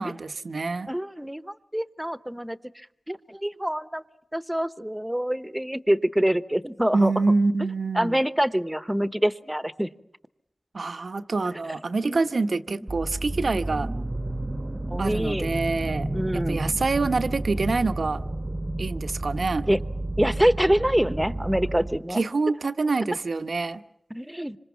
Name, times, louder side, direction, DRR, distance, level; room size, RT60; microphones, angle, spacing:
voice 1, 0.0-0.9 6.9-8.2 10.7-13.9 15.0-18.2 18.8-19.7 22.1-23.8, right 3 dB, 75° right, 10 dB, 1.0 m, -26 dB
voice 2, 0.9-2.6 3.1-4.0 4.3-7.1 7.9-9.9 12.0-12.2 14.9-15.5 16.1-16.6 19.7-19.8 20.2-22.2 24.1-24.6, equal, 10° right, 14 dB, 1.0 m, -25 dB
sound 1, 12.9-22.0, right 1 dB, 30° right, 1.0 m, -31 dB
26.5 x 26.5 x 7.2 m, 0.80 s
wide cardioid pair, 60°, 0 cm